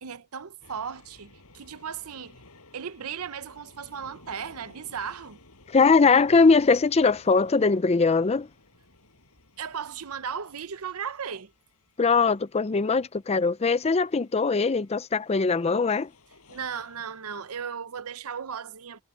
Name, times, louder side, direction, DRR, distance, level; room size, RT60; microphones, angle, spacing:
voice 1, 0.0-2.4 2.7-5.4 9.6-11.5 16.5-19.0, right 7 dB, 75° right, 0.8 m, -36 dB
sound 1, 0.6-17.6, left 2 dB, 75° left, 6.7 m, -56 dB
voice 2, 5.7-8.5 12.0-16.1, left 4 dB, 30° left, 0.5 m, -21 dB
head